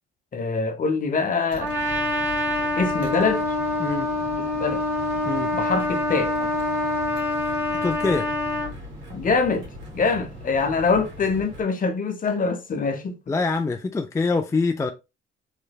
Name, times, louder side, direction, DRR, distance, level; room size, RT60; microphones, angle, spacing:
voice 1, 0.3-1.7 2.8-3.4 4.6-4.8 5.5-6.5 9.1-9.7 9.9-13.2, left 4 dB, 45° left, 0.8 m, -24 dB
sound 1, 1.5-11.6, equal, 70° right, 1.8 m, -40 dB
Trumpet, 1.6-8.7, left 2 dB, 10° right, 1.7 m, -26 dB
voice 2, 7.8-8.3 13.3-14.9, left 3 dB, 15° left, 0.3 m, -24 dB
3.3 x 3.1 x 2.3 m
cardioid pair, 90°, 20 cm